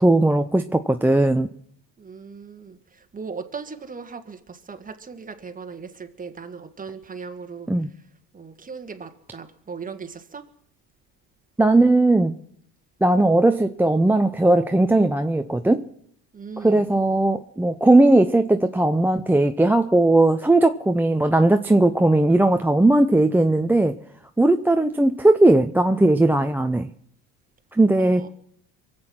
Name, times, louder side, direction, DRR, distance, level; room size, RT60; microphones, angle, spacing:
voice 1, 0.0-1.5 7.7-7.9 11.6-12.4 13.0-15.8 16.6-23.9 24.4-26.9 27.8-28.2, right 2 dB, 5° right, 6 dB, 0.5 m, -18 dB
voice 2, 2.0-2.8 3.1-7.7 8.3-10.4 16.3-16.9 28.0-28.3, right 5 dB, 25° right, 7 dB, 1.5 m, -38 dB
23.5 x 7.9 x 6.0 m, 0.69 s
cardioid pair, 100°, 35 cm